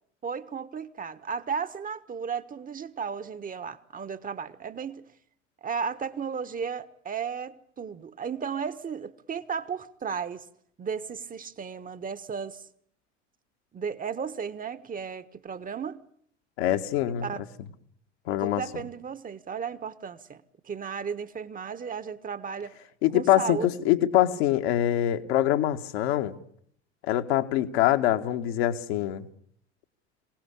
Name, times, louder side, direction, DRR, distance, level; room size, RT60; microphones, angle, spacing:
voice 1, 0.2-5.0 5.6-10.5 10.8-12.6 13.7-16.0 17.2-17.4 18.4-22.8 23.1-23.7, right 6 dB, 25° right, 1.4 m, -34 dB
voice 2, 16.6-17.3 18.3-18.6 23.0-26.3 27.1-29.3, left 13 dB, 60° left, 1.8 m, -24 dB
26.0 x 18.0 x 8.5 m
figure-of-eight pair, 75°, 36 cm